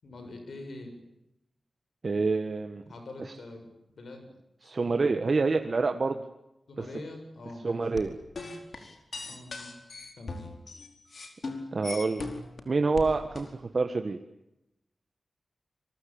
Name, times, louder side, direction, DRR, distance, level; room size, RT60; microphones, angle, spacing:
voice 1, 0.0-1.0 2.9-3.7 4.0-4.3 4.6-5.1 6.7-7.9 9.2-9.8 10.2-10.5, left 2 dB, 85° left, 5 dB, 7.1 m, -44 dB
voice 2, 2.0-2.8 4.6-6.2 6.8-6.9 7.6-8.1 11.7-12.3 12.6-13.5 13.7-14.2, right 3 dB, 55° right, 6 dB, 1.6 m, -27 dB
sound 1, 7.9-12.6 12.9-13.5, left 3 dB, 65° left, 4.7 m, -39 dB
26.0 x 23.5 x 9.0 m, 0.88 s
wide cardioid pair, 65°, 0 cm